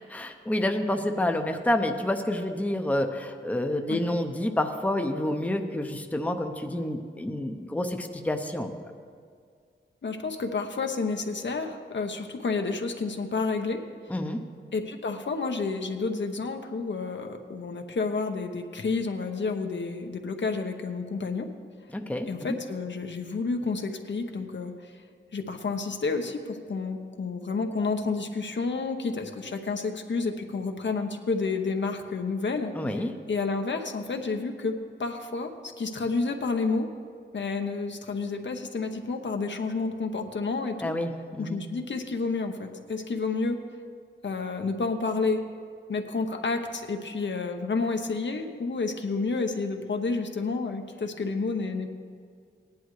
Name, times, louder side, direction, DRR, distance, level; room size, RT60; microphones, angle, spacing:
voice 1, 0.1-8.7 14.1-14.4 21.9-22.6 32.7-33.1 40.8-41.7, left 1 dB, 5° left, 5 dB, 0.7 m, -28 dB
voice 2, 10.0-13.8 14.7-21.5 22.3-25.0 25.3-36.9 37.3-40.9 41.4-43.6 44.2-45.4 45.9-51.9, left 4 dB, 65° left, 5 dB, 0.9 m, -30 dB
17.5 x 10.5 x 3.2 m, 2.1 s
wide cardioid pair, 95°, 20 cm